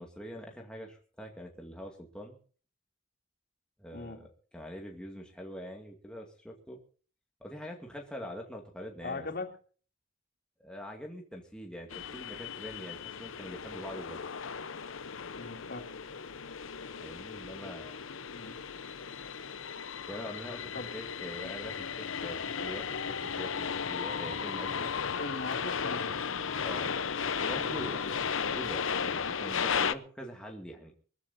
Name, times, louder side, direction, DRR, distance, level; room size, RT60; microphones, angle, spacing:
voice 1, 0.0-2.4 3.8-6.8 7.4-9.3 10.6-14.2 17.0-17.9 20.1-24.9 26.6-26.9 27.2-30.9, equal, 5° left, 0 dB, 2.2 m, -44 dB
voice 2, 9.0-9.5 15.3-15.8 18.3-18.6 20.7-20.9 25.2-26.1, left 3 dB, 55° left, 4 dB, 3.0 m, -39 dB
sound 1, 11.9-29.9, left 6 dB, 85° left, 0.9 m, -35 dB
24.0 x 14.5 x 2.8 m, 0.41 s
head